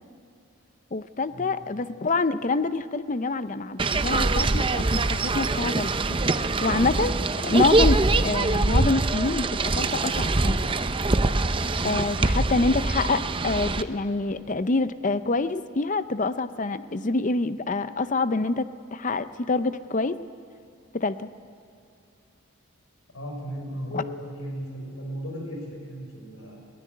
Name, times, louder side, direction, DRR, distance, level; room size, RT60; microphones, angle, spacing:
voice 1, 0.9-6.2 6.6-7.1 7.4-10.6 11.8-20.2 20.9-21.3 23.9-24.0, left 3 dB, 40° left, 13 dB, 0.6 m, -26 dB
sound 1, 3.8-13.8, right 2 dB, 25° right, 0.6 m, -24 dB
voice 2, 23.1-26.6, equal, 90° left, 0 dB, 6.1 m, -36 dB
20.5 x 16.5 x 9.5 m, 2.6 s
head